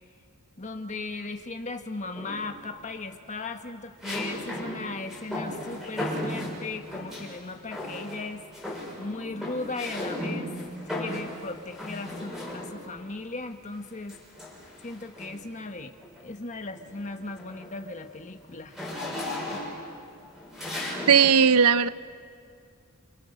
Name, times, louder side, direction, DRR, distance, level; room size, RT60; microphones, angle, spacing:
voice 1, 0.6-8.4 9.0-10.5 11.0-14.2 14.8-15.9 16.2-18.8, left 3 dB, 35° left, 5 dB, 1.3 m, -37 dB
sound 1, 2.1-2.7 4.0-7.3 7.7-8.3 8.5-13.0 14.1-15.5 16.0-16.2 16.6-21.4, left 1 dB, ahead, 6.7 m, -36 dB
voice 2, 21.1-21.9, right 7 dB, 85° right, 15 dB, 0.7 m, -17 dB
28.0 x 27.5 x 6.6 m, 2.3 s
head